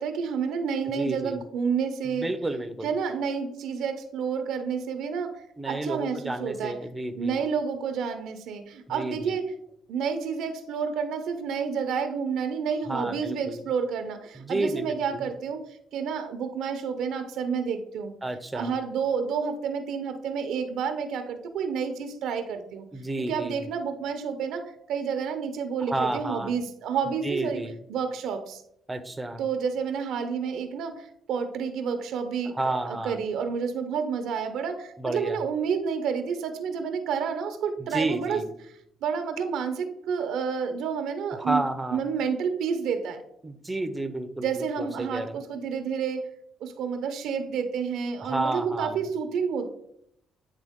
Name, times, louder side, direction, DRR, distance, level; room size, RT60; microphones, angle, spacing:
voice 1, 0.0-2.3 2.8-6.8 7.2-9.4 9.9-18.1 18.5-22.9 23.2-27.6 27.9-28.6 29.4-32.5 32.9-38.4 39.0-41.6 41.9-43.2 44.4-46.3 46.6-49.7, right 6 dB, 80° right, 7 dB, 0.7 m, -29 dB
voice 2, 0.8-1.4 2.0-2.9 5.6-7.4 8.9-9.4 12.9-13.6 14.3-15.2 18.2-18.7 22.9-23.6 25.9-26.5 27.1-27.7 28.9-29.4 32.5-33.2 35.0-35.4 37.8-38.5 41.4-42.0 43.4-45.4 48.2-49.0, right 2 dB, 15° right, 9 dB, 0.7 m, -31 dB
9.0 x 3.4 x 3.6 m, 0.73 s
cardioid pair, 90°, 0 cm